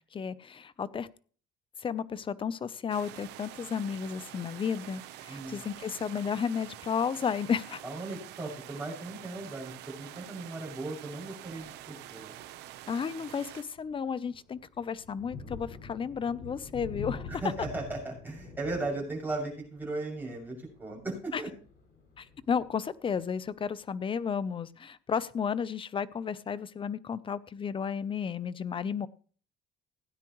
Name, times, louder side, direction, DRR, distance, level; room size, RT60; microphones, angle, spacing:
voice 1, 0.1-1.1 1.8-7.8 12.9-17.3 21.3-21.4 22.2-29.1, left 6 dB, 30° left, 17 dB, 0.7 m, -33 dB
sound 1, 2.9-13.6, right 13 dB, 90° right, 0.9 m, -47 dB
voice 2, 5.3-5.6 7.8-12.3 17.3-21.5, right 2 dB, 10° right, -2 dB, 6.6 m, -37 dB
Thunder, 11.5-11.8 12.3-12.5 12.9-23.5, left 5 dB, 80° left, 5.5 m, -46 dB
17.0 x 9.6 x 3.1 m, 0.42 s
cardioid pair, 110°, 17 cm